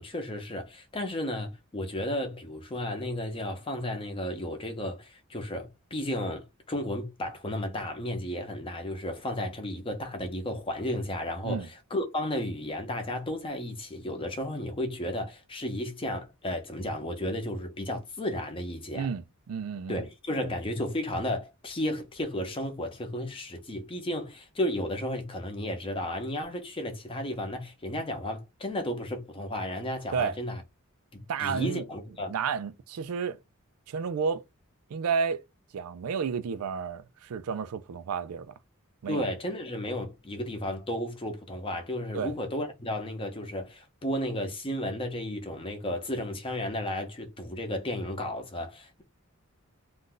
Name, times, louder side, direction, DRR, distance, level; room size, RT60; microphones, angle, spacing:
voice 1, 0.0-19.1 19.9-30.6 31.1-32.3 39.1-49.0, left 1 dB, 25° left, 0.6 m, -33 dB
voice 2, 18.9-20.0 30.1-30.4 31.3-31.8 32.3-33.4 33.9-34.4 34.9-35.4 35.7-38.5 39.0-39.3 42.1-42.3, right 6 dB, 80° right, 0.4 m, -31 dB
2.5 x 2.2 x 3.7 m
head